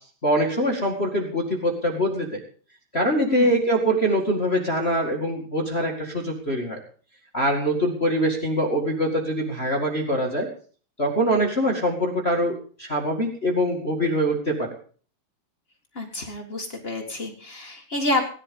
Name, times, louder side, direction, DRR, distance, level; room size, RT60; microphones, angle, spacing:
voice 1, 0.2-2.4 2.9-6.8 7.3-10.5 11.0-14.7, equal, 35° left, 1 dB, 1.0 m, -23 dB
voice 2, 15.9-18.2, left 2 dB, 85° left, 0 dB, 0.5 m, -28 dB
18.0 x 11.5 x 5.4 m, 0.43 s
omnidirectional pair, 5.0 m